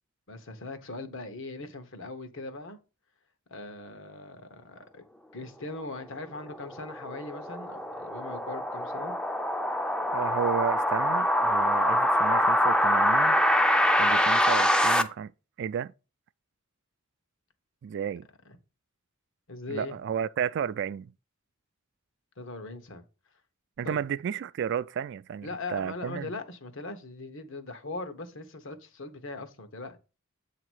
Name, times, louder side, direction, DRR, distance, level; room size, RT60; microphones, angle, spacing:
voice 1, 0.3-2.8 3.5-5.0 5.3-9.1 18.4-18.6 19.5-20.0 22.4-23.0 23.8-24.1 25.4-30.0, left 3 dB, 65° left, 1.1 m, -40 dB
sound 1, 6.3-15.0, equal, 5° left, 0.4 m, -24 dB
voice 2, 10.1-13.4 14.0-15.3 15.6-15.9 17.8-18.3 19.7-21.1 23.8-26.3, right 8 dB, 60° right, 0.3 m, -32 dB
8.0 x 2.9 x 6.2 m
head